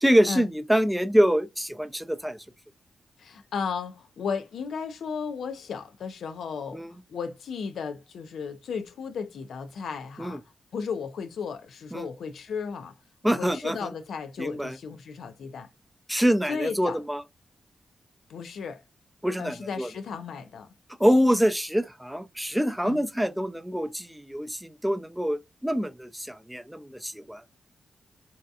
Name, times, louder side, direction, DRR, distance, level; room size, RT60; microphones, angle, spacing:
voice 1, 0.0-2.4 6.7-7.0 10.2-10.4 11.9-12.1 13.2-13.9 14.4-14.8 16.1-17.2 19.2-19.9 21.0-27.4, equal, 5° right, 0.4 m, -25 dB
voice 2, 3.2-6.8 7.1-10.4 10.7-12.9 13.2-15.7 16.5-17.0 18.3-18.8 19.4-20.7 22.8-23.0, left 6 dB, 80° left, 0.3 m, -35 dB
2.6 x 2.3 x 2.3 m
cardioid pair, 60°, 0 cm